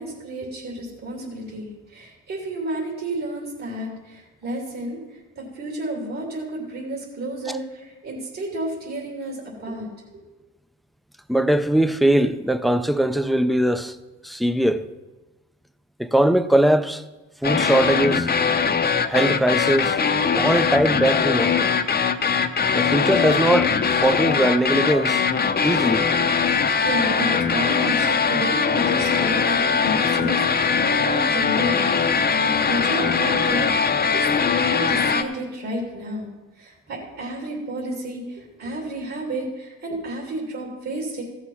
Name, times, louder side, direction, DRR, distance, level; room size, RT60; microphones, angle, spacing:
voice 1, 0.0-5.0 5.3-9.9 10.1-10.2 26.5-26.6 26.8-31.9 32.4-34.3 34.5-36.3 36.5-41.2, right 1 dB, 60° right, 3.0 m, -31 dB
voice 2, 11.3-14.0 14.2-14.8 16.0-17.0 17.4-18.3 19.1-20.0 20.3-21.7 22.7-23.7 24.0-25.2 25.6-26.1, right 1 dB, ahead, 0.5 m, -20 dB
sound 1, 17.4-35.2, left 6 dB, 35° left, 0.7 m, -21 dB
14.5 x 6.3 x 5.8 m
cardioid pair, 90°, 30 cm